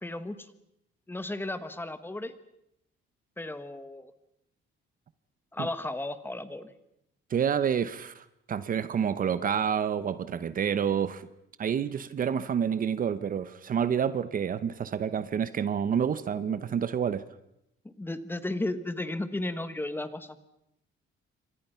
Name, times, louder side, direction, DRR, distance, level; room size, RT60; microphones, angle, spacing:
voice 1, 0.0-0.4 1.1-2.3 3.4-4.1 5.5-6.7 17.8-20.4, left 2 dB, 10° left, 12 dB, 1.4 m, -34 dB
voice 2, 7.3-11.3 11.6-17.2, right 8 dB, 40° right, 14 dB, 0.9 m, -28 dB
28.5 x 25.5 x 5.7 m, 0.80 s
cardioid pair, 150°, 21 cm